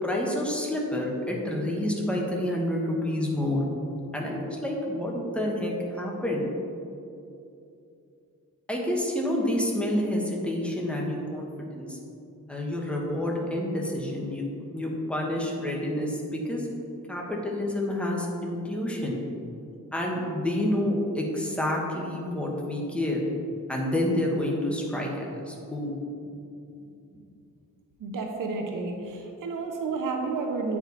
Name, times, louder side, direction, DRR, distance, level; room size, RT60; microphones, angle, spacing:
voice 1, 0.0-3.6 4.1-6.4 8.7-12.0 12.5-14.4 14.7-16.7 17.1-19.2 19.9-23.2 23.7-25.9, left 1 dB, 5° left, -2 dB, 1.3 m, -28 dB
voice 2, 28.0-30.8, right 4 dB, 80° right, 3 dB, 0.9 m, -31 dB
9.1 x 4.8 x 4.0 m, 2.7 s
cardioid pair, 105°, 31 cm